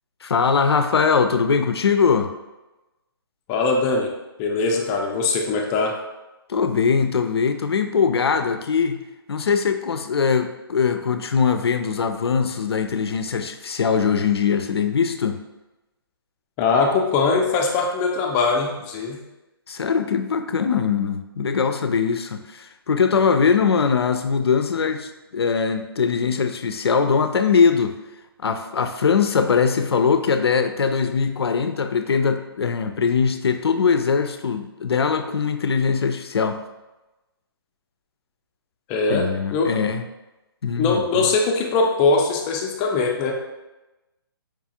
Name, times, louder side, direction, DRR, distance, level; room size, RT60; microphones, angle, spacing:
voice 1, 0.2-2.3 6.5-9.0 9.3-15.4 19.7-28.0 28.4-36.6 39.1-40.1 40.6-41.3, left 6 dB, 90° left, 8 dB, 0.4 m, -21 dB
voice 2, 3.5-4.1 4.4-6.0 16.6-19.2 38.9-39.7 40.8-43.3, left 4 dB, 20° left, 1 dB, 0.4 m, -21 dB
4.7 x 2.4 x 2.8 m, 1.0 s
hypercardioid pair, 145°, 13 cm